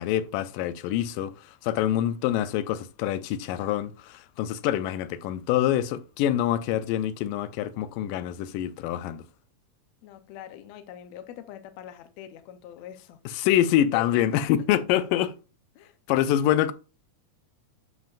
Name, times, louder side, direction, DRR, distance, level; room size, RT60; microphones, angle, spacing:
voice 1, 0.0-9.2 13.3-15.3 16.1-16.7, left 11 dB, 90° left, 2.2 m, -25 dB
voice 2, 10.0-13.2 13.6-14.4 15.8-16.0, left 10 dB, 70° left, 1.7 m, -43 dB
11.0 x 5.2 x 2.5 m
omnidirectional pair, 3.8 m